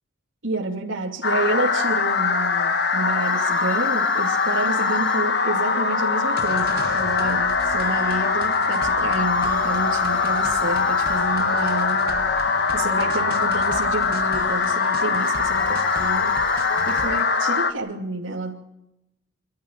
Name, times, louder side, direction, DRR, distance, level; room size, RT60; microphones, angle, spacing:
voice 1, 0.4-16.3 16.9-18.6, right 2 dB, 80° right, -3 dB, 3.0 m, -29 dB
sound 1, 1.2-17.7, left 4 dB, 55° left, 1.6 m, -22 dB
sound 2, 3.2-5.3 9.2-11.3 15.2-17.1, left 2 dB, 5° left, 2.4 m, -38 dB
sound 3, 6.4-17.2, right 2 dB, 50° right, 1.5 m, -39 dB
29.0 x 13.5 x 9.5 m, 0.89 s
head